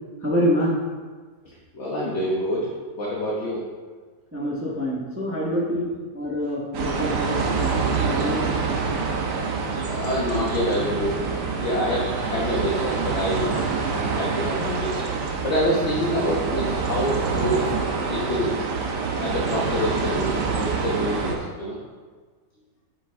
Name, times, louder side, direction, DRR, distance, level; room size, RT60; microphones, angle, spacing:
voice 1, 0.2-0.8 4.3-8.5 9.2-9.3, equal, 10° right, -5 dB, 1.0 m, -26 dB
voice 2, 1.7-2.7 3.0-3.6 9.8-11.2 11.5-13.7 14.0-15.0 15.4-17.7 18.1-18.6 19.2-21.8, equal, 45° left, -5 dB, 1.3 m, -26 dB
sound 1, 6.7-21.3, right 4 dB, 75° right, 1.5 m, -26 dB
7.5 x 6.8 x 3.5 m, 1.5 s
omnidirectional pair, 1.8 m